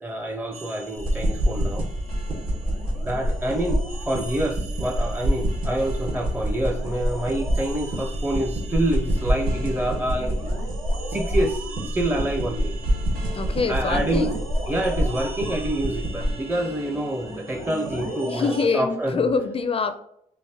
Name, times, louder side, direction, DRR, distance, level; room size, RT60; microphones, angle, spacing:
voice 1, 0.0-1.9 3.0-10.4 11.1-12.8 13.7-14.3 14.7-19.3, right 1 dB, 15° right, 3 dB, 0.6 m, -27 dB
sound 1, 0.5-18.6, right 2 dB, 90° right, 1.3 m, -39 dB
sound 2, 1.0-16.3, equal, 70° right, 1.6 m, -27 dB
voice 2, 13.3-14.4 18.3-20.0, left 4 dB, 40° left, 8 dB, 0.4 m, -25 dB
5.1 x 2.5 x 2.8 m, 0.71 s
cardioid pair, 75°, 15 cm